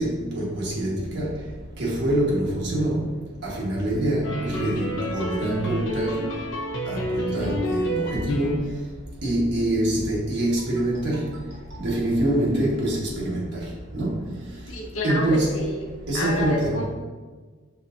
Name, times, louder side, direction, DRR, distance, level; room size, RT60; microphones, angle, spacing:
voice 1, 0.0-1.4 1.8-3.1 3.4-6.3 6.9-8.8 9.2-11.4 11.8-14.3 15.0-15.5 16.1-16.8, right 1 dB, 55° right, -4 dB, 1.3 m, -25 dB
sound 1, 4.2-8.8, equal, 65° left, 0.7 m, -29 dB
voice 2, 14.7-15.9 16.1-16.8, left 1 dB, 85° left, -1 dB, 1.0 m, -29 dB
5.5 x 3.7 x 2.5 m, 1.4 s
head